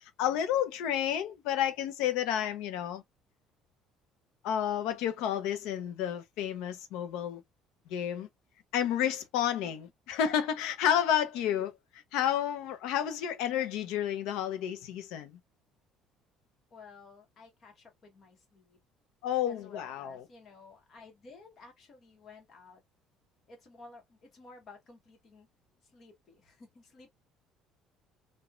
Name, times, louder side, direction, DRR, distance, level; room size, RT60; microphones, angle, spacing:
voice 1, 0.2-3.0 4.4-7.4 7.9-8.3 8.7-11.7 12.1-15.3 19.2-20.2, left 10 dB, 80° left, 0.6 m, -30 dB
voice 2, 16.7-18.8 19.5-22.8 23.5-25.5 25.9-27.1, left 3 dB, 30° left, 1.0 m, -54 dB
3.0 x 2.2 x 2.4 m
cardioid pair, 175°, 0 cm